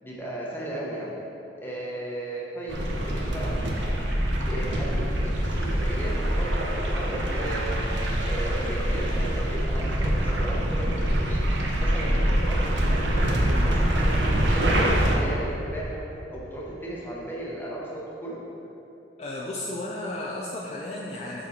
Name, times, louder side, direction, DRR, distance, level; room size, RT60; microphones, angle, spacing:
voice 1, 0.0-1.2 1.6-3.5 4.4-7.8 8.2-11.4 11.8-16.0 16.3-18.4, right 1 dB, 10° left, -5 dB, 1.0 m, -35 dB
sound 1, 2.7-15.2, right 1 dB, 85° right, 0.8 m, -25 dB
voice 2, 19.2-21.5, left 1 dB, 35° left, -4 dB, 0.4 m, -34 dB
6.5 x 4.4 x 4.3 m, 2.9 s
head